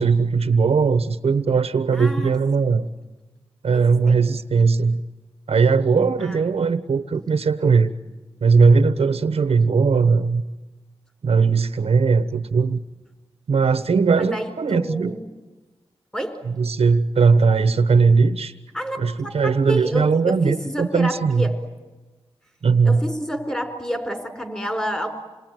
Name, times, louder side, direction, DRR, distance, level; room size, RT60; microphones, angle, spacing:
voice 1, 0.0-2.9 3.6-5.0 5.5-7.9 8.4-10.4 11.2-12.8 13.5-15.2 16.6-18.5 19.0-21.5 22.6-23.0, right 5 dB, 75° right, 10 dB, 1.2 m, -19 dB
voice 2, 1.9-2.3 2.6-2.7 3.7-4.2 6.2-6.4 14.2-15.3 16.1-16.4 18.7-19.0 19.2-21.5 22.8-25.1, equal, 10° left, 6 dB, 4.6 m, -29 dB
28.0 x 21.0 x 9.3 m, 1.2 s
wide cardioid pair, 95°, 10 cm